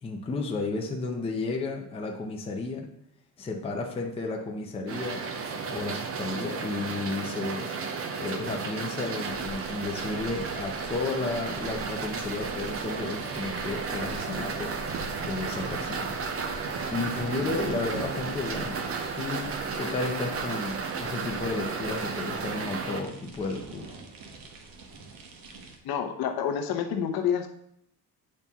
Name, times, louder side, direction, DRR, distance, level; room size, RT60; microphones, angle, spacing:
voice 1, 0.0-2.9 3.4-5.3 5.7-7.7 8.2-14.8 15.2-16.2 16.9-23.9, left 3 dB, 15° left, 0 dB, 0.6 m, -33 dB
sound 1, 4.9-23.0, right 5 dB, 35° right, 0.6 m, -33 dB
sound 2, 9.2-25.8, right 1 dB, 60° right, 1.0 m, -46 dB
voice 2, 25.8-27.5, left 8 dB, 60° left, 4 dB, 0.9 m, -28 dB
8.6 x 4.3 x 3.5 m, 0.73 s
cardioid pair, 180°, 40 cm